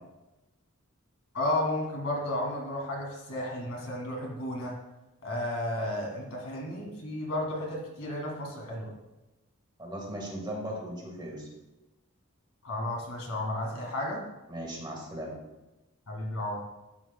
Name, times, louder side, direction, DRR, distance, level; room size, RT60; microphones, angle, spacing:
voice 1, 1.3-4.7 5.2-8.9 12.6-14.2 16.1-16.6, left 1 dB, 75° left, -2 dB, 2.1 m, -33 dB
voice 2, 9.8-11.5 14.5-15.3, equal, 20° right, -1 dB, 1.5 m, -37 dB
11.5 x 6.1 x 2.2 m, 1.0 s
head